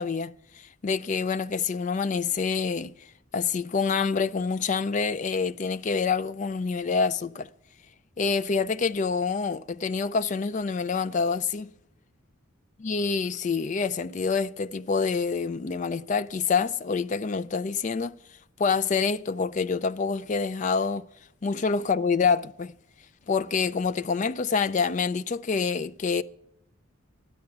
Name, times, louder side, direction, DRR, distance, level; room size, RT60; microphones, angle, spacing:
voice 1, 0.0-2.9 3.3-7.5 8.2-11.7 12.8-18.2 18.6-21.1 21.4-22.7 23.3-26.2, left 5 dB, 35° left, 0.4 m, -27 dB
12.5 x 9.7 x 5.9 m
head